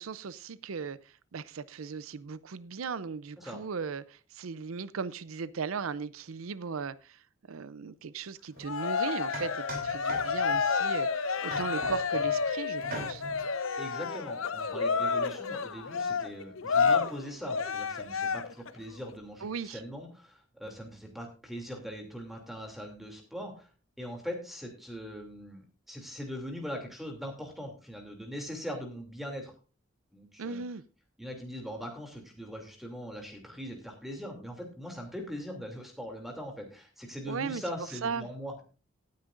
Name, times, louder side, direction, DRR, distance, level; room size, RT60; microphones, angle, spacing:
voice 1, 0.0-13.2 19.4-19.8 30.4-30.8 37.3-37.6 38.0-38.3, right 5 dB, 90° right, 0.5 m, -37 dB
Cheering, 8.6-18.7, left 5 dB, 85° left, 0.8 m, -30 dB
sound 1, 8.6-8.7 9.3-10.6 11.5-12.4 12.8-13.4, right 2 dB, 45° right, 3.6 m, -41 dB
voice 2, 13.8-23.7 24.0-29.5 30.1-30.6 31.2-38.6, equal, ahead, 2.7 m, -41 dB
18.0 x 9.6 x 2.5 m
head